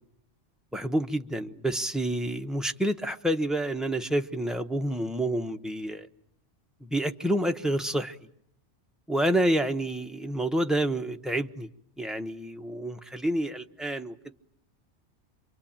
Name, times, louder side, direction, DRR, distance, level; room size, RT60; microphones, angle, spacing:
voice 1, 0.7-6.1 6.8-8.2 9.1-11.7 12.0-14.3, right 1 dB, ahead, 4 dB, 0.9 m, -28 dB
27.5 x 24.0 x 8.8 m, 0.72 s
omnidirectional pair, 1.2 m